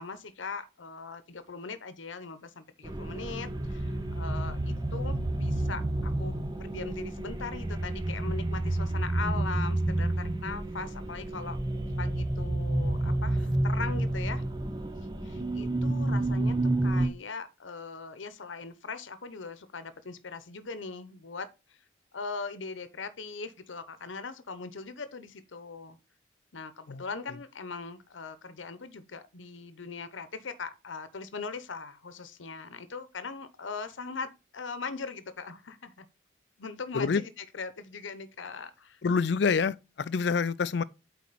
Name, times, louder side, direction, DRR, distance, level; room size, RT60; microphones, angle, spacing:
voice 1, 0.0-11.6 12.0-14.4 15.2-21.5 22.1-26.0 26.5-36.1 36.6-39.0, left 4 dB, 85° left, 0.8 m, -40 dB
sound 1, 2.8-17.1, right 1 dB, 20° right, 0.7 m, -30 dB
voice 2, 39.0-40.8, left 5 dB, 60° left, 0.4 m, -27 dB
8.6 x 4.1 x 4.1 m
head